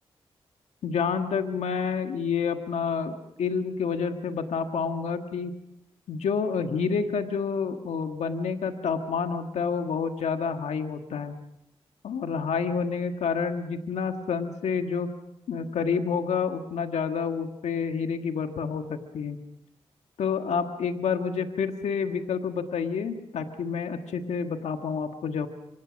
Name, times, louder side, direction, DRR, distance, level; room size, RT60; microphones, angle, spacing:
voice 1, 0.8-5.5 6.1-11.4 12.0-15.1 15.5-19.4 20.2-25.5, left 6 dB, 85° left, 6 dB, 1.7 m, -29 dB
26.0 x 26.0 x 6.3 m, 0.84 s
supercardioid pair, 40°, 11 cm